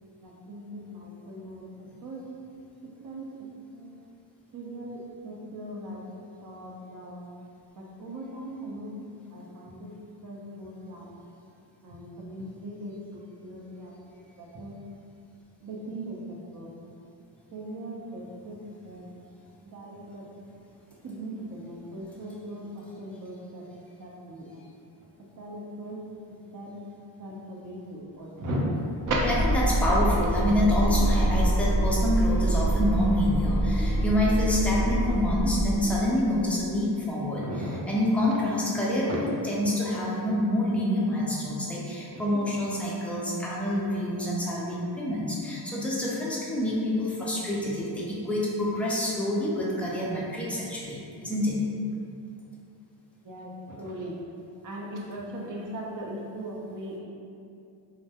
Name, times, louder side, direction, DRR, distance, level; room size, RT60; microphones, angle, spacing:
voice 1, 0.2-1.6 2.0-2.2 3.0-3.3 3.7-4.0 4.5-7.3 7.7-11.3 11.8-14.8 15.6-17.0 17.5-18.6 18.8-19.0 19.6-20.2 21.0-23.6 24.0-24.6 25.4-26.0 26.3-26.8 27.2-28.7 29.1-29.2 37.3-37.8 38.3-38.4 39.1-39.2 42.1-42.5 53.2-54.2 54.6-57.0, right 1 dB, 45° right, -3 dB, 0.6 m, -38 dB
sound 1, 29.0-36.3, right 1 dB, 20° right, 0.9 m, -25 dB
voice 2, 29.4-37.4 37.9-51.6, left 1 dB, 5° left, -6 dB, 0.4 m, -27 dB
2.2 x 2.0 x 2.7 m, 2.5 s
cardioid pair, 75°, 46 cm